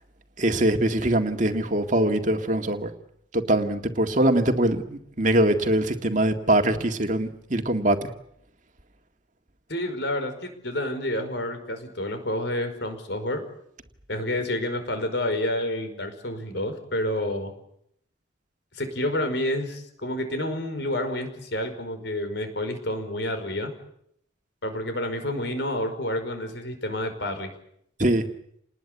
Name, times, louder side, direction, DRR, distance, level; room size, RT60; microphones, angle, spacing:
voice 1, 0.4-2.9 3.3-8.1 28.0-28.3, right 1 dB, 40° right, 5 dB, 2.0 m, -23 dB
voice 2, 9.7-13.4 14.1-17.5 18.7-23.7 24.6-27.5, left 1 dB, 60° left, 8 dB, 5.3 m, -29 dB
28.5 x 20.5 x 8.4 m, 0.73 s
head